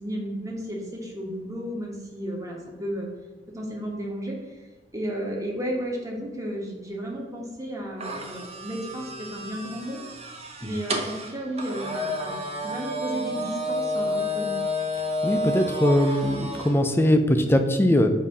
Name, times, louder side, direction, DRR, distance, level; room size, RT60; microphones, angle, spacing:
voice 1, 0.0-3.1 3.5-4.5 4.9-10.0 10.6-14.6, equal, 20° right, -2 dB, 1.2 m, -33 dB
sound 1, 8.0-16.7, left 1 dB, 35° right, 0.7 m, -30 dB
voice 2, 15.2-18.1, left 1 dB, 15° left, 6 dB, 0.5 m, -21 dB
7.2 x 2.8 x 5.4 m, 1.2 s
head